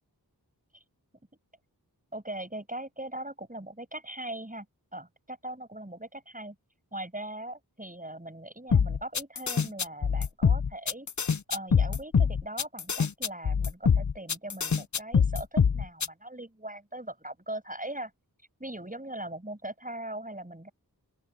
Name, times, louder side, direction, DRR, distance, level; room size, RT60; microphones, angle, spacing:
voice 1, 2.1-4.7 4.9-6.6 6.9-11.1 11.5-18.1 18.6-20.7, right 1 dB, 20° right, 6.7 m, -40 dB
sound 1, 8.7-16.1, left 6 dB, 50° left, 0.7 m, -24 dB
open air
wide cardioid pair, 50°, 39 cm